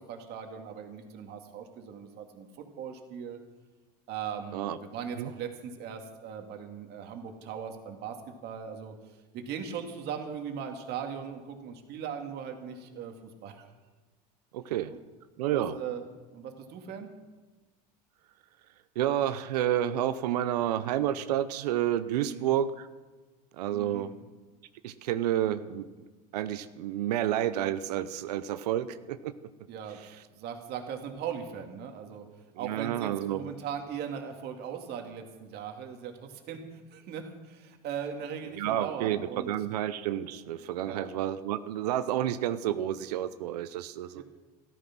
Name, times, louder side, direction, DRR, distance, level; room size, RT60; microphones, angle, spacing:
voice 1, 0.0-3.4 4.1-8.2 8.4-13.1 13.4-13.7 15.5-16.0 16.3-17.1 22.1-22.5 23.7-24.2 29.7-32.2 32.6-39.5 40.8-41.1 44.2-44.3, right 7 dB, 55° right, 4 dB, 2.4 m, -39 dB
voice 2, 14.5-14.9 15.4-15.7 19.0-22.9 23.6-24.1 24.8-25.9 26.3-29.3 32.5-33.4 38.6-44.2, right 11 dB, 85° right, 12 dB, 0.7 m, -30 dB
13.5 x 13.5 x 6.1 m, 1.3 s
supercardioid pair, 100°, 20 cm